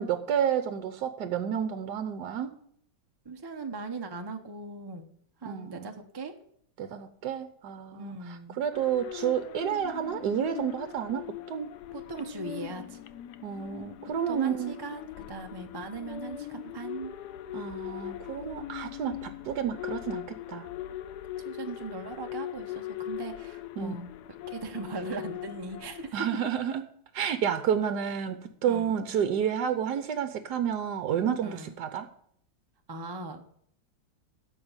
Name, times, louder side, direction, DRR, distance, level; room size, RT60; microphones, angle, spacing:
voice 1, 0.0-2.5 5.4-5.9 6.8-11.7 13.4-14.8 17.5-20.7 23.8-24.0 26.1-26.8 27.1-32.1, right 8 dB, 65° right, 9 dB, 1.2 m, -30 dB
voice 2, 3.2-5.1 5.4-6.3 7.9-8.6 11.9-13.0 14.3-17.1 21.4-24.1 24.5-26.3 28.7-28.9 31.4-31.7 32.9-33.4, right 3 dB, 30° right, 4 dB, 0.4 m, -39 dB
sound 1, 8.7-26.1, left 13 dB, 70° left, 1.0 m, -40 dB
13.0 x 5.2 x 8.9 m, 0.67 s
omnidirectional pair, 2.1 m